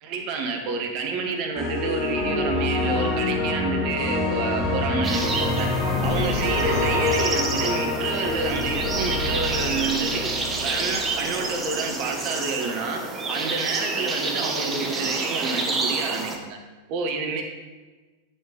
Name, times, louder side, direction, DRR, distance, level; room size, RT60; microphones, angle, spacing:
voice 1, 0.0-5.7 6.0-10.3 10.6-13.0 13.3-16.6 16.9-17.4, right 4 dB, 45° right, 3 dB, 1.3 m, -28 dB
sound 1, 1.6-11.6, left 2 dB, 15° left, 2.2 m, -26 dB
sound 2, 5.0-16.4, right 3 dB, 20° right, 1.1 m, -29 dB
8.7 x 6.4 x 3.8 m, 1.2 s
figure-of-eight pair, 90°, 0 cm